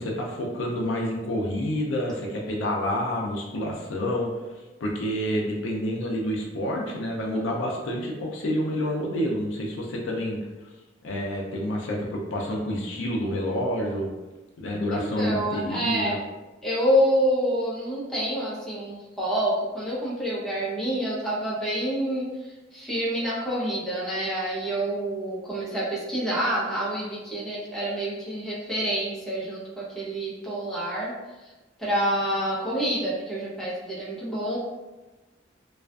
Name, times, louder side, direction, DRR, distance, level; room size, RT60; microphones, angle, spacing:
voice 1, 0.0-4.3 4.8-10.4 11.0-14.1 14.6-16.2, equal, 85° left, -2 dB, 0.4 m, -28 dB
voice 2, 14.9-16.2 16.6-22.3 22.7-31.2 31.4-31.5 31.8-34.6, equal, 5° left, -8 dB, 0.7 m, -27 dB
2.4 x 2.3 x 2.3 m, 1.1 s
head